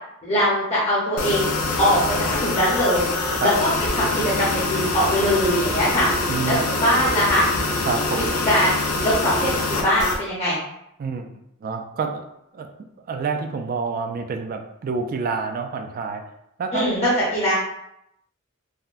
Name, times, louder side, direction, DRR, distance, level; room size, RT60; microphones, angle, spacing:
voice 1, 0.2-1.5 1.8-2.0 2.4-3.0 3.4-3.7 3.9-6.1 6.5-7.4 8.4-8.8 9.0-10.6 16.7-17.5, equal, 30° left, -8 dB, 0.8 m, -21 dB
sound 1, 1.2-10.2, left 2 dB, 80° left, 0.5 m, -24 dB
voice 2, 6.3-6.6 7.9-8.3 11.0-11.3 11.6-12.2 12.5-12.7 13.1-16.2 16.6-16.9, right 5 dB, 45° right, 5 dB, 0.3 m, -27 dB
3.6 x 2.1 x 2.4 m, 0.79 s
head